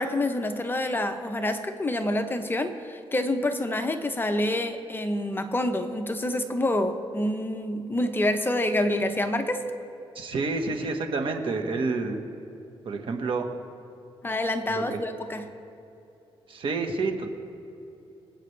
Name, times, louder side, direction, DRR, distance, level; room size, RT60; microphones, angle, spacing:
voice 1, 0.0-9.6 14.2-15.4, left 1 dB, 20° left, 7 dB, 0.8 m, -27 dB
voice 2, 10.1-12.2 12.8-13.5 14.7-15.0 16.5-17.3, right 3 dB, 60° right, 4 dB, 1.4 m, -29 dB
25.0 x 8.8 x 3.3 m, 2.9 s
cardioid pair, 110°, 10 cm